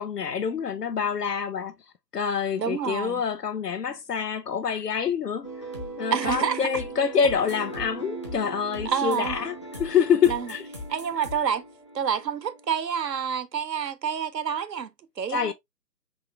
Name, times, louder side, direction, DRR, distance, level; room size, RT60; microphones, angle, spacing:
voice 1, 0.0-1.7 2.1-5.5 6.0-10.6 15.3-15.5, left 7 dB, 70° left, 0.7 m, -26 dB
voice 2, 2.6-3.2 6.1-6.7 8.8-9.4 10.3-10.5 10.9-11.6 11.9-15.5, right 7 dB, 80° right, 0.8 m, -28 dB
sound 1, 5.4-12.8, right 2 dB, 20° left, 0.6 m, -38 dB
5.5 x 2.4 x 3.0 m
figure-of-eight pair, 140°, 49 cm